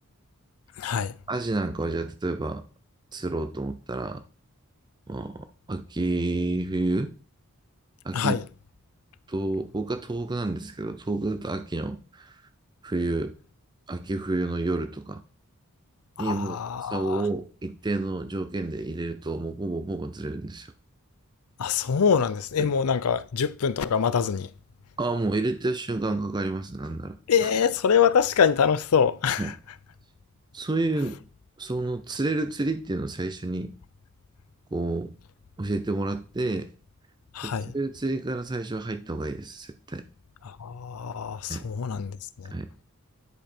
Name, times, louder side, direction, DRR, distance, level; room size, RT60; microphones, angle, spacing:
voice 1, 0.8-1.1 8.1-8.4 16.2-17.2 21.6-24.5 27.3-29.5 37.3-37.7 40.4-42.5, left 7 dB, 85° left, 0.5 m, -24 dB
voice 2, 1.3-2.6 3.1-4.2 5.1-7.1 8.0-8.4 9.3-12.4 12.8-13.3 13.9-15.2 16.2-20.7 22.6-22.7 25.0-27.5 29.4-29.5 30.5-31.2 31.6-33.8 34.7-35.1 35.6-36.7 37.4-40.0 41.5-41.6 42.5-42.7, right 2 dB, 20° right, 0.5 m, -29 dB
9.8 x 5.1 x 4.4 m
head